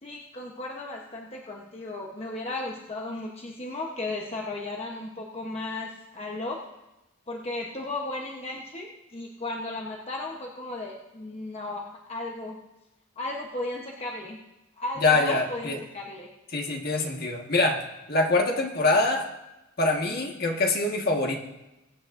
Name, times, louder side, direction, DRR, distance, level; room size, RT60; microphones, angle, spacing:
voice 1, 0.0-6.6 7.3-12.6 13.2-14.4 14.8-16.3, left 2 dB, 30° left, -1 dB, 0.9 m, -35 dB
voice 2, 15.0-15.8 16.5-17.8 18.1-19.3 19.8-21.4, left 2 dB, 50° left, 1 dB, 1.5 m, -24 dB
21.5 x 8.8 x 2.6 m, 0.98 s
head